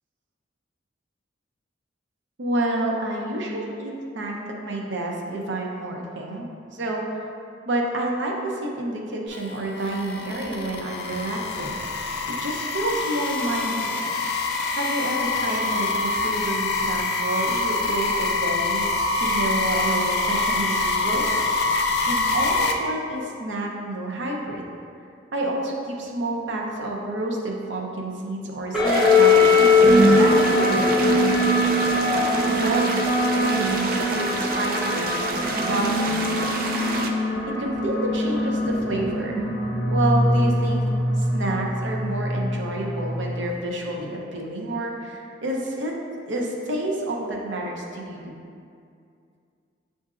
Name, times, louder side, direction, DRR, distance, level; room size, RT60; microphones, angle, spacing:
voice 1, 2.4-4.4 4.6-7.3 7.7-11.8 12.3-14.1 14.8-18.9 19.1-21.3 21.8-24.6 25.3-31.3 32.1-36.5 37.5-39.4 39.9-40.8 41.2-46.0 46.3-48.4, right 1 dB, 85° right, -1 dB, 0.6 m, -29 dB
sound 1, 9.3-22.7, left 3 dB, 55° left, 0.3 m, -25 dB
sound 2, 28.7-43.5, left 2 dB, 5° right, 0.8 m, -21 dB
sound 3, 28.8-37.1, right 3 dB, 50° right, 0.3 m, -29 dB
7.3 x 2.6 x 2.4 m, 2.4 s
head